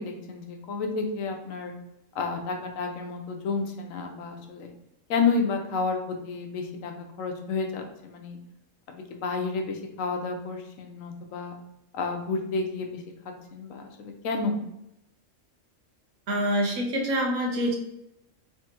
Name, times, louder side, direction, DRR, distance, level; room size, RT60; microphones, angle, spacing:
voice 1, 0.0-1.7 2.1-4.7 5.1-6.9 7.2-8.4 8.9-11.6 11.9-13.0 13.5-14.6, left 4 dB, 80° left, 3 dB, 1.1 m, -30 dB
voice 2, 16.3-17.8, equal, 85° right, 1 dB, 1.2 m, -26 dB
3.5 x 3.3 x 2.9 m, 0.84 s
omnidirectional pair, 1.4 m